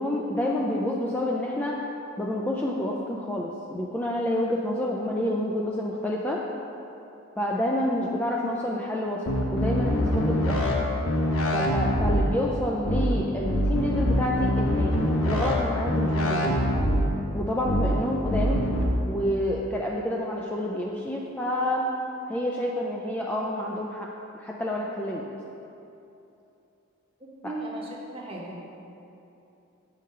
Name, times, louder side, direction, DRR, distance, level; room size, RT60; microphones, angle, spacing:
voice 1, 0.0-1.8 2.2-6.4 7.4-10.8 11.5-14.9 15.3-16.7 17.3-18.6 19.1-21.9 22.3-24.1 24.4-25.2 27.4-27.5, left 1 dB, 10° left, -3 dB, 0.3 m, -28 dB
sound 1, 9.3-10.7 11.0-12.3 12.8-13.1 13.4-15.5 15.8-17.1 17.6-17.9 18.2-18.8, equal, 80° left, 0.9 m, -24 dB
voice 2, 27.2-28.7, right 2 dB, 25° right, -3 dB, 0.9 m, -37 dB
7.3 x 3.8 x 5.4 m, 2.9 s
head